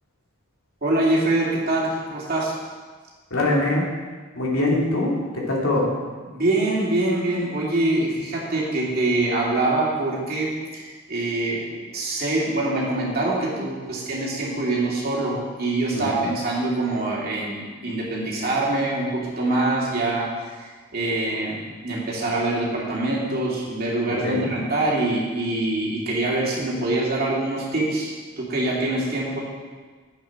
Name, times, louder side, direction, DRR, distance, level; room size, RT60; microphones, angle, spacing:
voice 1, 0.8-2.5 6.3-11.7 11.9-29.4, right 2 dB, 45° right, -4 dB, 2.7 m, -24 dB
voice 2, 3.3-3.9 4.3-5.9 15.9-16.3 24.2-24.5, left 2 dB, 75° left, -3 dB, 2.9 m, -23 dB
11.0 x 8.3 x 6.0 m, 1.5 s
head